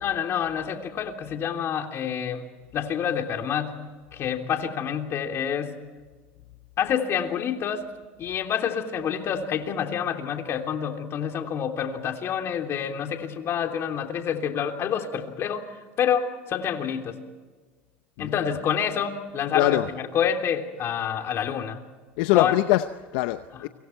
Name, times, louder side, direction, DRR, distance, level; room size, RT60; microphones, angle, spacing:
voice 1, 0.0-2.5 2.7-3.8 4.1-5.8 6.8-7.9 8.2-17.2 18.2-21.8 22.3-22.6, left 8 dB, 45° left, 3.4 m, -28 dB
voice 2, 18.2-18.5 19.5-19.9 22.2-23.7, left 17 dB, 75° left, 0.8 m, -23 dB
29.5 x 26.0 x 4.6 m
supercardioid pair, 100°, 6 cm